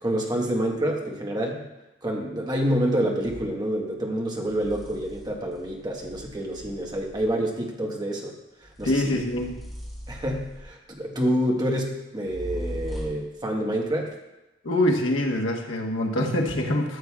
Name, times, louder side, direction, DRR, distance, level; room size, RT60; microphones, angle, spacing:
voice 1, 0.0-1.7 2.0-8.3 8.6-9.2 10.1-14.1, equal, 20° right, 0 dB, 1.3 m, -27 dB
sound 1, 3.2-3.5 4.4-7.4 8.6-10.9 12.2-13.4, equal, ahead, 2.4 m, -39 dB
voice 2, 8.8-9.6 14.6-17.0, left 1 dB, 80° left, 0 dB, 1.3 m, -24 dB
14.0 x 7.4 x 2.4 m, 0.99 s
head